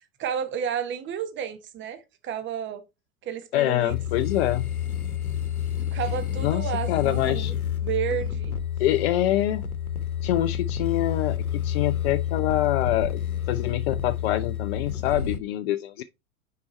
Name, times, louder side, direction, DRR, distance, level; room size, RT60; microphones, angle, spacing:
voice 1, 0.2-2.8 3.2-3.9 5.9-7.5 7.8-8.5, right 8 dB, 25° right, 1.1 m, -31 dB
voice 2, 3.5-4.7 6.4-7.5 8.8-9.6 10.2-13.2 13.5-16.0, left 14 dB, 50° left, 0.5 m, -25 dB
sound 1, 3.9-15.4, left 9 dB, 90° left, 0.9 m, -29 dB
6.1 x 4.8 x 4.1 m
figure-of-eight pair, 85°, 42 cm